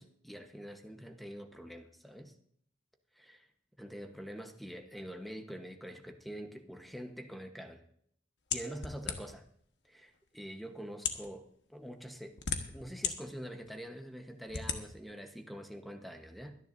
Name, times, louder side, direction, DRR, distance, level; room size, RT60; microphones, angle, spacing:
voice 1, 0.0-2.3 3.1-3.4 3.8-7.8 8.5-9.4 9.8-12.4 12.7-16.6, equal, ahead, 5 dB, 1.1 m, -45 dB
sound 1, 8.5-9.5 10.3-10.4 10.9-11.3 12.1-13.1 13.6-13.7 14.5-14.8, left 7 dB, 70° left, 1.3 m, -35 dB
23.5 x 10.5 x 2.6 m, 0.67 s
head